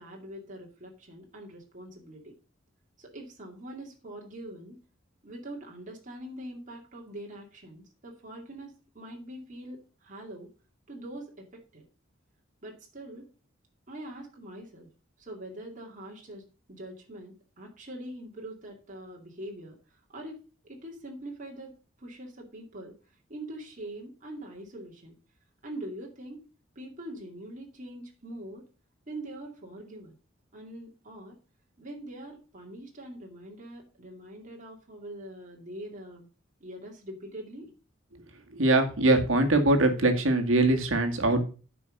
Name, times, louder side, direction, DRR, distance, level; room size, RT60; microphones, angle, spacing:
voice 1, 0.0-2.3 3.0-4.8 5.2-10.5 10.9-11.8 12.6-13.3 13.9-14.9 15.2-19.8 20.1-20.4 20.6-21.7 22.0-22.9 23.3-25.1 25.6-26.4 26.8-28.6 29.1-30.1 30.5-31.4 31.8-36.3 36.6-37.7, right 1 dB, 40° right, 0 dB, 2.5 m, -43 dB
voice 2, 38.5-41.4, right 2 dB, 70° right, 4 dB, 1.9 m, -22 dB
9.4 x 5.5 x 6.5 m, 0.36 s
head